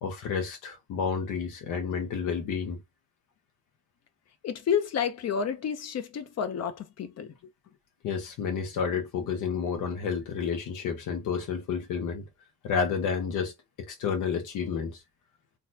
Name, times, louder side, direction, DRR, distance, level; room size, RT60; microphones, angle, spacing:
voice 1, 0.0-2.8 8.0-12.2 12.6-13.5 13.9-15.0, left 6 dB, 85° left, 1.1 m, -30 dB
voice 2, 4.4-7.3, left 7 dB, 55° left, 0.8 m, -30 dB
3.9 x 2.3 x 2.7 m
cardioid pair, 90°, 30 cm